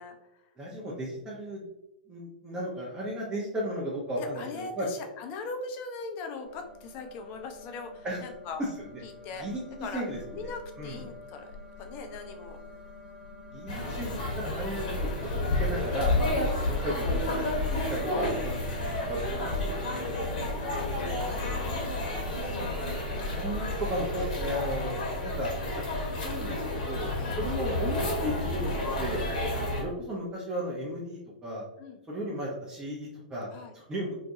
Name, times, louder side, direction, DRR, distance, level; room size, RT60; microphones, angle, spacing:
voice 1, 0.0-0.4 4.2-8.6 9.0-9.5 9.8-10.0 10.3-12.6 16.5-16.6 18.8-19.0 19.3-22.5 27.2-27.4 31.8-32.0 33.5-33.7, left 4 dB, 35° left, 5 dB, 0.4 m, -41 dB
voice 2, 0.6-1.7 2.1-4.9 8.0-8.2 9.4-10.2 10.8-11.0 13.5-15.3 15.6-17.4 17.7-17.8 18.1-19.2 19.6-19.7 23.4-25.8 26.2-27.1 27.4-29.2 29.5-31.6 32.1-33.5 33.7-34.2, equal, 15° right, -5 dB, 0.5 m, -35 dB
sound 1, 6.4-25.6, left 2 dB, 80° right, 1.1 m, -45 dB
sound 2, 13.7-29.8, left 1 dB, 55° left, 0.9 m, -30 dB
2.4 x 2.2 x 2.7 m, 0.90 s
figure-of-eight pair, 105°, 5 cm